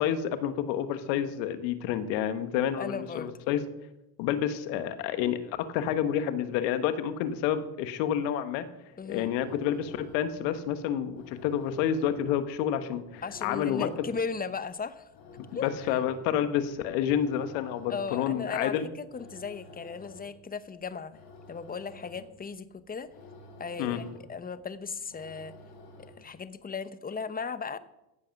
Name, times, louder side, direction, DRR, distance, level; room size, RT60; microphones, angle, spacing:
voice 1, 0.0-3.6 4.2-8.6 9.0-13.9 15.4-18.9 23.8-24.0, left 9 dB, 85° left, 11 dB, 1.4 m, -29 dB
voice 2, 2.8-3.3 9.0-9.3 13.2-15.1 15.5-16.0 17.9-21.1 21.5-23.1 23.6-25.5 26.0-27.8, left 5 dB, 20° left, 13 dB, 0.8 m, -36 dB
sound 1, 9.0-26.5, left 2 dB, 70° left, 4.5 m, -52 dB
15.0 x 7.4 x 6.0 m, 0.91 s
supercardioid pair, 95°, 49 cm